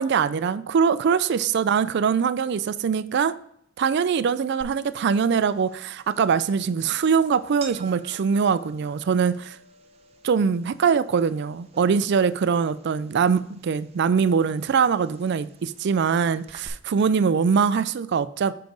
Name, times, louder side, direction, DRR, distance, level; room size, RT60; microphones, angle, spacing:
voice 1, 0.0-3.3 3.8-9.6 10.2-18.5, right 6 dB, 55° right, 0.4 m, -22 dB
sound 1, 4.6-16.7, right 3 dB, 30° right, 0.7 m, -49 dB
6.8 x 4.6 x 3.9 m
head